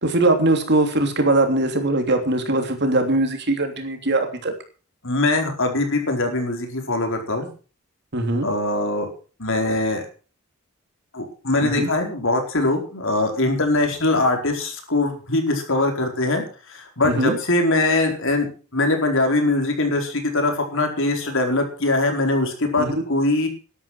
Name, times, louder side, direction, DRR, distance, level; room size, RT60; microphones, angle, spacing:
voice 1, 0.0-4.5 8.1-8.5 11.6-11.9 17.0-17.4 22.8-22.9, right 2 dB, 50° right, 6 dB, 3.1 m, -21 dB
voice 2, 5.0-7.5 8.4-9.1 9.4-10.0 11.1-18.5 18.7-23.5, left 2 dB, 60° left, 4 dB, 4.5 m, -22 dB
12.5 x 12.0 x 6.2 m, 0.37 s
head